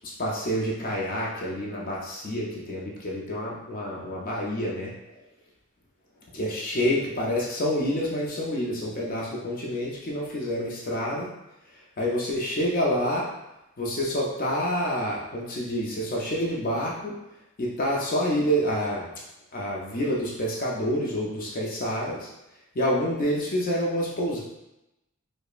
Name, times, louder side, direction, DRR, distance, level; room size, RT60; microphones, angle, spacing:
voice 1, 0.0-5.2 6.3-11.3 11.7-13.3 13.8-17.2 17.6-19.1 19.5-22.3 22.7-24.4, equal, 40° left, -3 dB, 0.5 m, -28 dB
4.8 x 2.1 x 2.4 m, 0.90 s
head